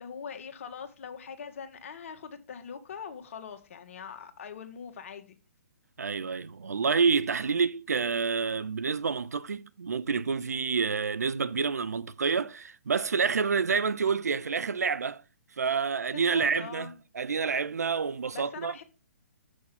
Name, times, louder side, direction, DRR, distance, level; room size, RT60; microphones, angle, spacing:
voice 1, 0.0-5.3 16.1-16.9 18.3-18.8, left 7 dB, 55° left, 1.5 m, -42 dB
voice 2, 6.0-15.2 15.6-18.7, right 5 dB, 80° right, 0.6 m, -28 dB
7.0 x 6.2 x 6.0 m
hypercardioid pair, 140°, 8 cm